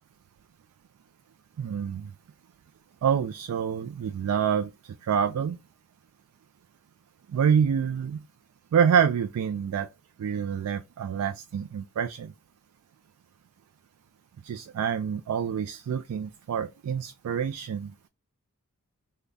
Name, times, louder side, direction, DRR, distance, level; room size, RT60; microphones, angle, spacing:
voice 1, 1.6-2.1 3.0-5.6 7.3-8.2 8.7-9.9 10.2-12.3 14.4-18.1, right 7 dB, 85° right, 0.3 m, -27 dB
3.4 x 2.1 x 3.8 m
head